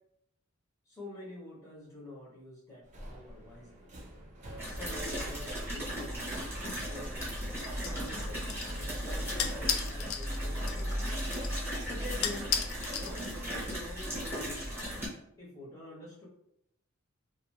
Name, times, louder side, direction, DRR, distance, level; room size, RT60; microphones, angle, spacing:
voice 1, 0.9-3.9 4.7-7.3 7.8-11.2 11.9-12.5 12.9-14.9 15.4-16.3, left 1 dB, 15° left, -7 dB, 0.6 m, -47 dB
Subway metro underground, 2.8-9.5, right 1 dB, 35° right, 0.4 m, -49 dB
sound 1, 4.6-15.1, equal, 10° right, 0.9 m, -36 dB
sound 2, 7.2-13.7, left 8 dB, 70° left, 0.3 m, -38 dB
2.3 x 2.2 x 2.9 m, 0.77 s
head